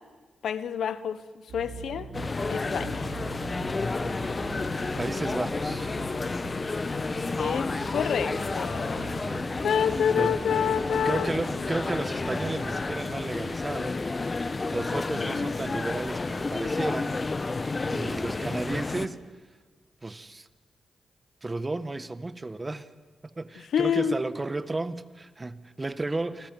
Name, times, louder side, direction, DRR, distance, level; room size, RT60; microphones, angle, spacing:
voice 1, 0.4-1.2 1.5-2.1 2.5-3.1 7.4-9.2 9.6-11.3 15.1-15.5 23.7-24.1, left 8 dB, 75° left, 1.1 m, -28 dB
Aircraft Dive, 1.5-12.7, right 4 dB, 85° right, 6.2 m, -43 dB
sound 1, 2.1-19.1, left 3 dB, 40° left, 1.5 m, -31 dB
voice 2, 5.0-5.9 9.2-9.6 10.1-10.4 11.0-14.0 14.4-17.1 17.6-19.2 20.0-20.5 21.4-22.9 23.2-26.5, right 2 dB, 30° right, 1.5 m, -33 dB
29.5 x 25.5 x 7.7 m
supercardioid pair, 40°, 0 cm